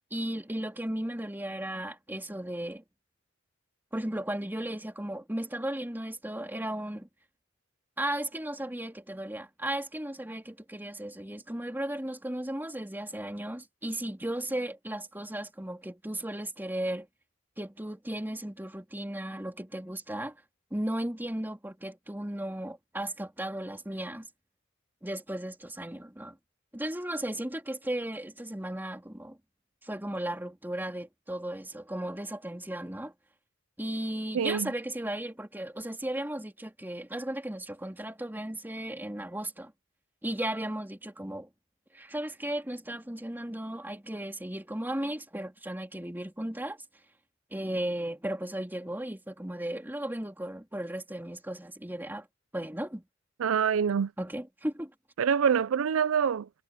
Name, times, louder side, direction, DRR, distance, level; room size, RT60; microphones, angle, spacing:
voice 1, 0.1-2.8 3.9-7.1 8.0-17.1 17.6-20.4 20.7-24.3 25.0-26.4 26.7-29.4 29.8-33.1 33.8-39.7 40.2-41.5 41.9-46.8 47.5-52.3 52.5-53.0 54.2-54.9, right 1 dB, 10° right, 2.7 m, -35 dB
voice 2, 34.3-34.7 53.4-54.1 55.2-56.5, right 7 dB, 80° right, 0.4 m, -25 dB
head